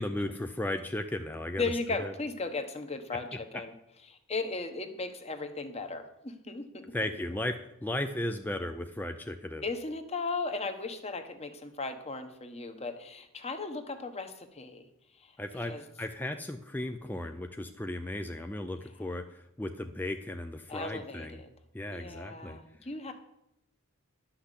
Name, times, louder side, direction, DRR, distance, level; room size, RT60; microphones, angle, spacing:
voice 1, 0.0-1.6 2.0-2.1 6.9-9.7 15.4-21.4 21.7-22.6, left 1 dB, 10° left, 6 dB, 0.5 m, -35 dB
voice 2, 1.6-3.7 4.1-7.1 9.6-14.9 15.2-15.3 15.7-15.8 20.7-21.5 21.9-23.1, left 3 dB, 30° left, 7 dB, 1.2 m, -36 dB
12.0 x 5.8 x 8.2 m, 0.82 s
head